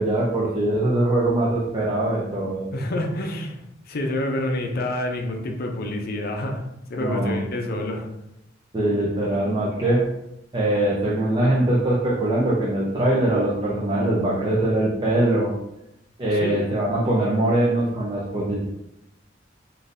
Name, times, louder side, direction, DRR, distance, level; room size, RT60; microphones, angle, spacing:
voice 1, 0.0-2.7 7.0-7.4 8.7-10.0 10.5-15.5 16.2-18.7, right 1 dB, 25° right, -5 dB, 0.5 m, -22 dB
voice 2, 2.7-6.6 6.9-8.1 16.3-16.6, left 1 dB, 55° left, 3 dB, 0.5 m, -28 dB
3.6 x 2.6 x 2.5 m, 0.83 s
head